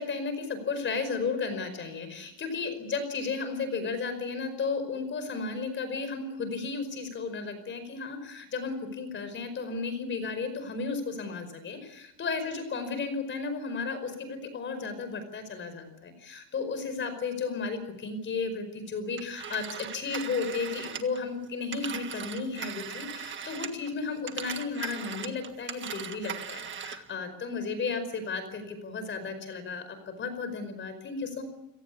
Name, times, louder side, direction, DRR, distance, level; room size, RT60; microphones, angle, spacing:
voice 1, 0.0-31.4, left 4 dB, 30° left, 10 dB, 5.0 m, -34 dB
Telephone, 19.2-23.9 24.2-27.1, right 7 dB, 30° right, 1.6 m, -39 dB
30.0 x 18.0 x 8.4 m, 0.90 s
cardioid pair, 175°, 37 cm